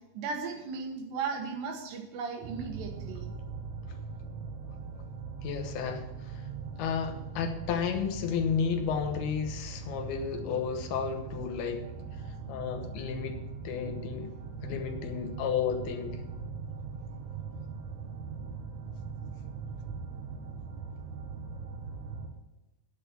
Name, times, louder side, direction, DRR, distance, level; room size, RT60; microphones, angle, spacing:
voice 1, 0.2-3.3, right 5 dB, 85° right, 3 dB, 3.6 m, -36 dB
sound 1, 2.4-22.3, right 5 dB, 65° right, 2.0 m, -40 dB
voice 2, 5.4-6.4 6.8-11.9 12.5-13.4 13.6-14.3 14.6-16.2, left 7 dB, 75° left, 5 dB, 3.0 m, -32 dB
9.7 x 8.2 x 7.1 m, 1.0 s
omnidirectional pair, 4.8 m